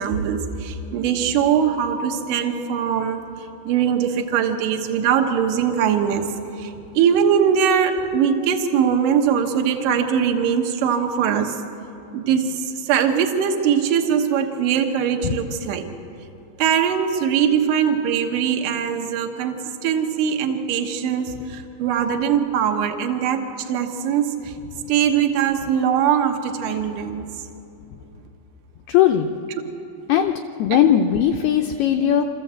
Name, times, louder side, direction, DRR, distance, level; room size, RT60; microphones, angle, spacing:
voice 1, 0.0-11.6 12.1-15.9 16.6-24.6 24.9-27.3, right 8 dB, 70° right, 4 dB, 2.0 m, -21 dB
voice 2, 28.9-29.3 30.1-30.3 30.6-32.2, left 10 dB, 90° left, 5 dB, 2.2 m, -18 dB
25.5 x 14.5 x 8.0 m, 2.8 s
omnidirectional pair, 5.4 m